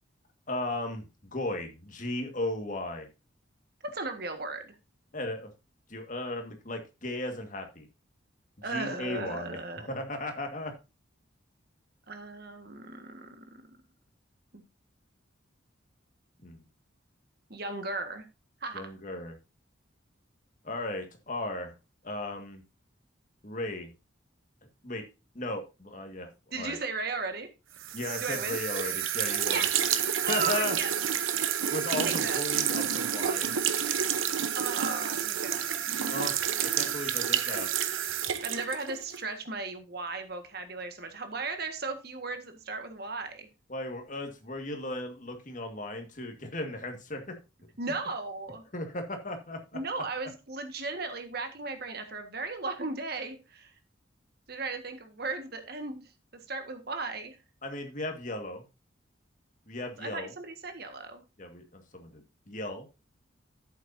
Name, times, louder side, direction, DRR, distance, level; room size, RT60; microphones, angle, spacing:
voice 1, 0.5-1.1 1.3-3.1 5.1-5.5 5.9-7.8 8.7-10.7 16.4-16.6 18.7-19.4 20.6-21.7 22.0-22.6 23.4-23.9 24.8-25.1 25.3-26.3 26.6-26.8 27.9-29.6 30.3-30.8 31.7-33.5 36.1-37.8 43.7-47.4 48.7-49.6 57.6-58.6 59.7-60.3 61.4-62.9, left 2 dB, 40° left, 5 dB, 1.9 m, -36 dB
voice 2, 3.9-4.7 8.6-9.9 12.1-13.4 14.5-14.6 17.5-18.3 18.6-18.8 26.5-27.5 28.2-28.6 29.4-29.7 30.2-30.9 32.0-32.4 34.5-35.6 38.4-43.5 47.8-48.6 49.7-53.7 54.5-56.1 56.5-57.4 60.0-61.2, right 3 dB, 50° right, 7 dB, 1.7 m, -36 dB
sound 1, 27.8-39.2, right 9 dB, 90° right, 0.9 m, -29 dB
11.0 x 8.4 x 2.7 m, 0.28 s
head